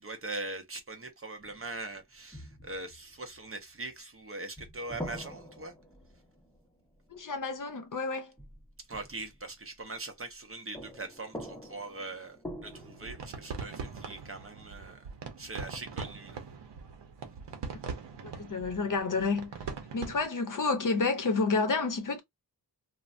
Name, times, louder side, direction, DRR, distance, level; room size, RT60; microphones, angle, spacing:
voice 1, 0.0-5.7 8.9-12.4 12.6-15.0 15.4-16.4, right 2 dB, 30° right, 0.6 m, -41 dB
sound 1, 1.4-1.9 2.3-4.1 4.6-7.6 8.4-10.5 10.7-15.1 16.3-16.9, equal, 5° left, 0.7 m, -46 dB
voice 2, 7.1-8.3 18.4-19.5 19.9-22.2, left 4 dB, 50° left, 0.7 m, -29 dB
sound 2, 12.7-20.3, right 5 dB, 75° right, 0.7 m, -42 dB
3.2 x 2.1 x 2.4 m
wide cardioid pair, 145°, 42 cm